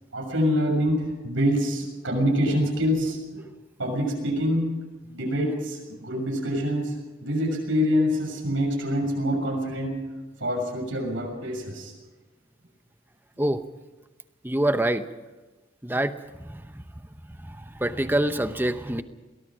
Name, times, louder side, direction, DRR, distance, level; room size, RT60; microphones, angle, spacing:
voice 1, 0.1-3.4 3.8-6.9 7.2-10.0 10.4-11.9, equal, 75° right, 1 dB, 6.7 m, -26 dB
voice 2, 14.4-15.1 15.8-16.8 17.3-19.0, right 1 dB, 10° right, 10 dB, 0.8 m, -26 dB
22.5 x 18.5 x 6.2 m, 1.2 s
head